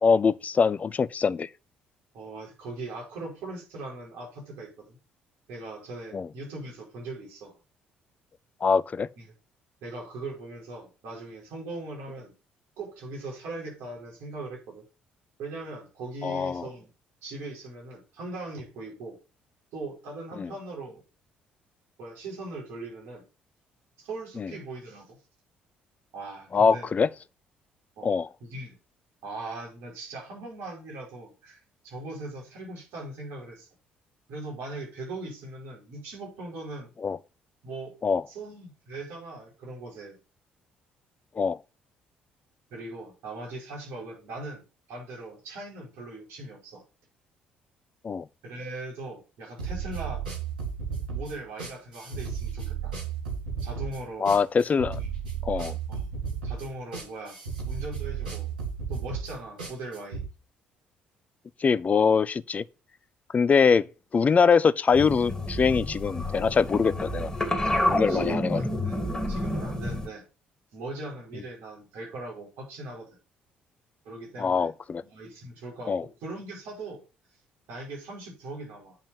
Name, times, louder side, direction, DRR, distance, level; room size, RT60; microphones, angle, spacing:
voice 1, 0.0-1.5 6.1-6.3 8.6-9.1 16.2-16.7 20.4-20.5 24.4-24.5 26.5-27.1 28.0-28.3 37.0-37.2 38.0-38.2 41.4-41.6 48.0-48.3 54.2-55.0 55.4-55.8 61.6-62.6 63.3-63.9 64.1-67.3 67.9-68.6 74.4-75.0 75.9-76.0, left 5 dB, 30° left, 0.6 m, -23 dB
voice 2, 2.1-5.0 5.5-7.6 9.2-9.3 9.8-12.3 12.8-14.9 15.4-16.9 17.2-19.2 19.7-21.0 22.0-23.2 24.0-25.2 26.1-26.9 28.0-28.8 29.2-31.6 31.8-33.7 34.3-36.9 37.6-37.9 38.3-40.2 42.7-44.6 44.9-46.8 48.4-50.2 51.1-52.9 53.6-54.3 55.0-55.1 55.9-56.1 56.4-57.4 57.7-58.5 58.9-60.2 68.1-70.3 70.7-73.1 74.0-74.7 75.1-77.0 77.7-79.0, right 2 dB, 60° right, 5.3 m, -40 dB
sound 1, 49.6-60.2, right 6 dB, 75° right, 3.4 m, -34 dB
sound 2, 64.9-70.1, left 1 dB, 15° left, 2.6 m, -29 dB
9.0 x 5.4 x 5.8 m
figure-of-eight pair, 50°, 5 cm